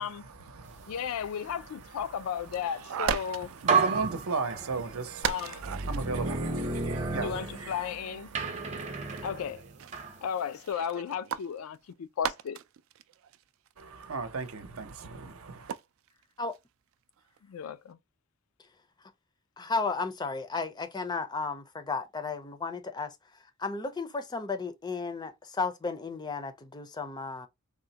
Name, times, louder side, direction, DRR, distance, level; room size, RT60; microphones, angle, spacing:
voice 1, 0.0-9.5 13.8-15.7, right 4 dB, 85° right, 0.7 m, -38 dB
voice 2, 0.9-3.5 5.2-5.7 7.2-8.3 9.2-9.6 10.2-12.6 17.5-18.0, left 8 dB, 90° left, 0.3 m, -34 dB
sound 1, 2.5-3.8 4.1-4.2 4.4-4.5 5.2-6.1 6.8-7.8 8.3-8.6 9.1-15.1 15.5-16.2 16.5-16.6 17.2-17.4, right 8 dB, 70° right, 0.3 m, -37 dB
sound 2, 3.2-3.3 3.7-5.0 5.6-7.9 8.3-10.2, right 4 dB, 35° right, 0.7 m, -31 dB
voice 3, 19.6-23.1 23.6-27.5, left 4 dB, 20° left, 0.4 m, -34 dB
3.6 x 2.1 x 2.7 m
head